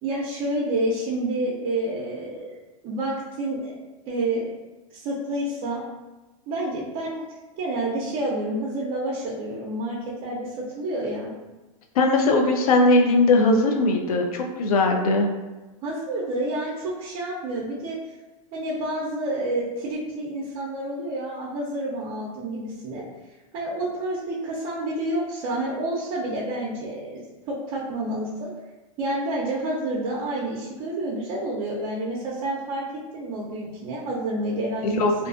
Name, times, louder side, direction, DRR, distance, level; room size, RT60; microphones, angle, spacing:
voice 1, 0.0-3.8 4.1-4.5 4.9-5.8 6.5-7.2 7.6-11.3 15.8-18.0 18.5-23.0 23.5-27.2 27.5-28.5 29.0-32.8 33.1-35.3, right 1 dB, 40° right, -5 dB, 0.5 m, -29 dB
voice 2, 11.9-15.3 34.8-35.3, left 2 dB, 85° left, 2 dB, 0.5 m, -19 dB
2.5 x 2.2 x 2.4 m, 1.1 s
hypercardioid pair, 125°, 18 cm